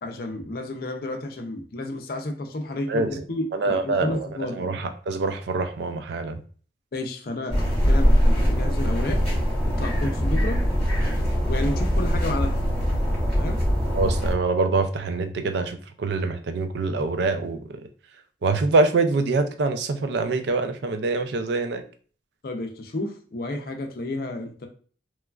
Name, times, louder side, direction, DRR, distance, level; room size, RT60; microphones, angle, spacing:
voice 1, 0.0-4.6 6.9-9.2 9.6-10.6 11.5-12.5 13.4-13.6 22.4-24.7, left 1 dB, 55° left, 4 dB, 0.4 m, -31 dB
voice 2, 2.9-3.2 3.5-6.4 13.9-17.8 18.4-21.8, right 3 dB, 70° right, 8 dB, 0.4 m, -25 dB
sound 1, 7.5-14.3, equal, 5° left, 1.2 m, -22 dB
3.0 x 2.4 x 2.2 m, 0.41 s
head